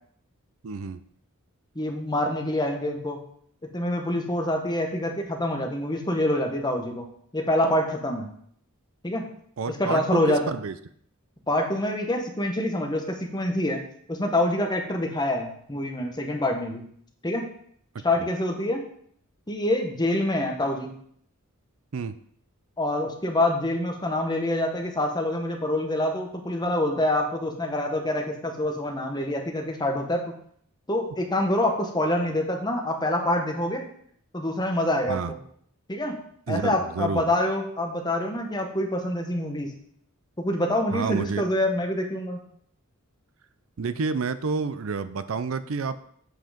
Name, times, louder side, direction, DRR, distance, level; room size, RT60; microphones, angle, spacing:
voice 1, 0.6-1.0 9.6-10.7 21.9-22.2 35.1-35.3 36.5-37.3 40.9-41.5 43.8-46.0, right 5 dB, 70° right, 12 dB, 0.5 m, -29 dB
voice 2, 1.7-3.2 3.7-7.1 7.3-8.3 9.0-9.2 9.7-10.4 11.5-13.8 14.1-16.8 17.2-17.4 18.0-18.8 19.5-20.9 22.8-30.2 30.9-33.9 34.3-35.4 35.9-36.2 36.5-39.7 40.4-42.4, left 1 dB, 20° left, 2 dB, 1.2 m, -26 dB
7.8 x 5.7 x 5.1 m, 0.64 s
head